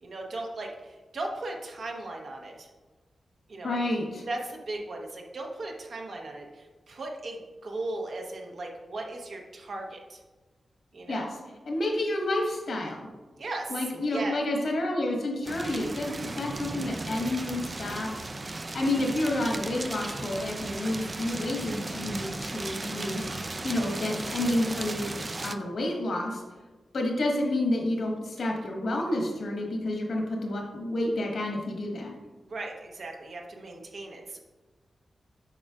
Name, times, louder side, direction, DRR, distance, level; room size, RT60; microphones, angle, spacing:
voice 1, 0.0-2.7 3.5-3.8 4.3-10.2 10.9-11.3 13.4-13.8 14.1-14.4 32.4-34.4, right 2 dB, 70° right, 1 dB, 1.1 m, -37 dB
voice 2, 3.6-4.2 11.1-11.3 11.7-13.0 13.7-25.1 25.4-26.4 26.9-32.1, left 1 dB, 70° left, 0 dB, 1.4 m, -30 dB
sound 1, 15.5-25.6, right 2 dB, 30° right, 0.3 m, -36 dB
7.3 x 5.4 x 2.5 m, 1.2 s
wide cardioid pair, 100°, 0 cm